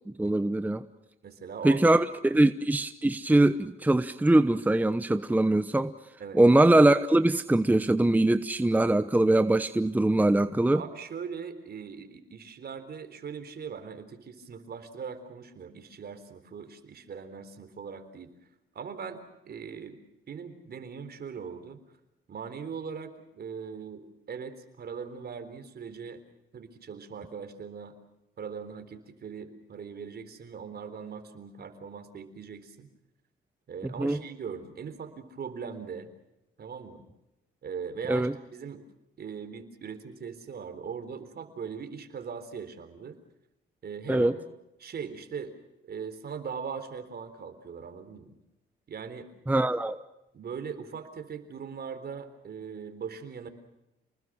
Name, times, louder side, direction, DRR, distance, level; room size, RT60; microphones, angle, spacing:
voice 1, 0.2-0.8 1.6-5.9 6.3-10.8 33.8-34.2 38.1-38.3 44.1-44.3 49.5-50.0, right 1 dB, 10° right, 11 dB, 0.9 m, -22 dB
voice 2, 1.2-2.0 6.2-6.4 10.7-18.3 18.7-20.0 20.3-21.8 22.3-26.2 26.5-28.0 28.4-32.9 33.7-36.1 36.6-37.0 37.6-38.8 39.2-43.2 43.8-44.5 44.8-45.5 45.8-48.3 48.9-49.3 50.3-53.5, right 6 dB, 50° right, 10 dB, 3.8 m, -40 dB
29.5 x 20.5 x 6.3 m, 0.92 s
cardioid pair, 90°, 20 cm